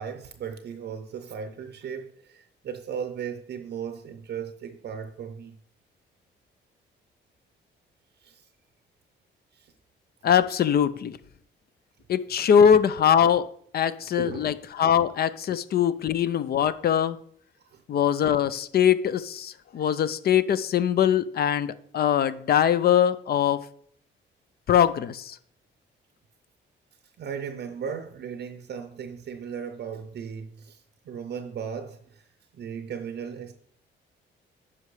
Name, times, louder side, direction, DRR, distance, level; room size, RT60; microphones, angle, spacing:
voice 1, 0.0-5.6 8.2-8.5 9.5-9.7 14.2-14.5 17.6-17.8 27.2-32.3 32.5-33.5, right 7 dB, 55° right, 0.6 m, -36 dB
voice 2, 10.2-11.2 12.1-13.5 13.7-17.2 17.9-23.6 24.7-25.4, left 9 dB, 50° left, 0.5 m, -22 dB
9.7 x 5.6 x 3.2 m
cardioid pair, 90°, 20 cm